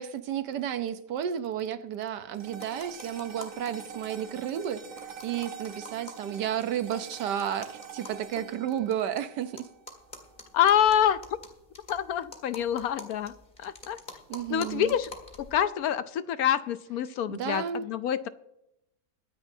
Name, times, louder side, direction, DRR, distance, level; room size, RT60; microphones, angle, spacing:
voice 1, 0.0-4.8 5.2-9.7 14.3-15.0 17.3-17.9, right 9 dB, 80° right, 1.4 m, -32 dB
sound 1, 2.3-10.9, right 6 dB, 55° right, 1.6 m, -46 dB
sound 2, 2.6-3.7 4.0-4.1 4.3-4.4 4.6-9.2 9.6-15.6, left 3 dB, 30° left, 2.0 m, -47 dB
voice 2, 10.5-11.2 11.9-13.3 13.6-14.0 14.5-15.1 15.4-18.3, left 9 dB, 70° left, 1.0 m, -26 dB
22.5 x 10.0 x 2.7 m
omnidirectional pair, 1.8 m